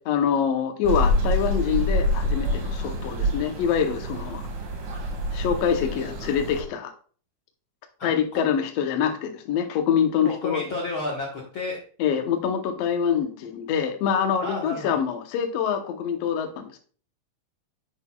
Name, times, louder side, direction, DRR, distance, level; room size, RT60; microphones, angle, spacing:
voice 1, 0.0-4.5 5.3-6.9 8.0-10.6 12.0-16.8, left 8 dB, 90° left, 5 dB, 1.4 m, -25 dB
sound 1, 0.8-6.6, left 1 dB, 70° right, 3.5 m, -26 dB
voice 2, 8.0-8.4 10.2-11.8 14.4-15.0, left 2 dB, 60° left, -3 dB, 1.3 m, -31 dB
9.9 x 8.0 x 2.3 m, 0.43 s
omnidirectional pair, 4.3 m